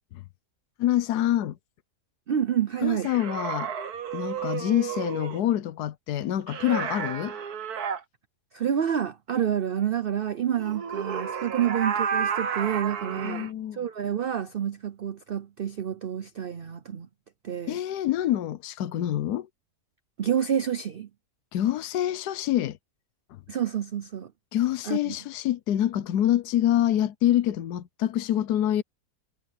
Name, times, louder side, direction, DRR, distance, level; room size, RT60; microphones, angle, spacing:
voice 1, 0.8-1.6 2.8-3.7 4.1-7.4 13.2-13.8 17.7-19.5 21.5-22.8 24.5-28.8, left 12 dB, 80° left, 1.3 m, -26 dB
voice 2, 2.3-3.1 8.5-17.1 17.4-17.8 20.2-21.1 23.5-24.3 24.8-25.1, right 9 dB, 55° right, 0.7 m, -28 dB
sound 1, 3.0-5.4 6.5-8.0 10.6-13.5, right 7 dB, 70° right, 1.8 m, -31 dB
omnidirectional pair, 1.7 m